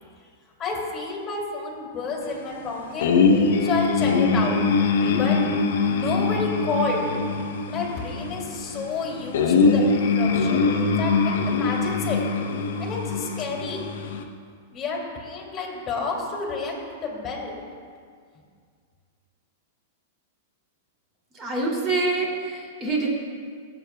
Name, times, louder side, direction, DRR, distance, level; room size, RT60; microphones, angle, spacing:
voice 1, 0.6-3.1 3.6-4.6 5.1-5.4 5.9-7.1 7.6-12.2 12.8-13.9 14.7-17.6, left 3 dB, 25° left, -2 dB, 2.4 m, -30 dB
sound 1, 3.0-14.2, left 4 dB, 75° left, 0.9 m, -23 dB
voice 2, 21.3-23.1, right 3 dB, 25° right, -3 dB, 2.7 m, -26 dB
18.5 x 8.0 x 2.3 m, 2.1 s
hypercardioid pair, 140°, 0 cm